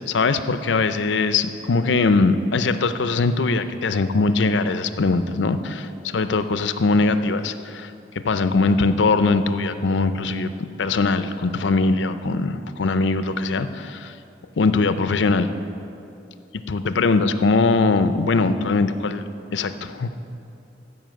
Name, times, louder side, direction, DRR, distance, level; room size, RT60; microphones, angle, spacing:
voice 1, 0.1-7.9 8.2-14.1 14.6-15.5 16.7-19.2 19.5-20.2, left 3 dB, 80° left, 11 dB, 0.5 m, -21 dB
14.5 x 5.5 x 7.6 m, 2.8 s
head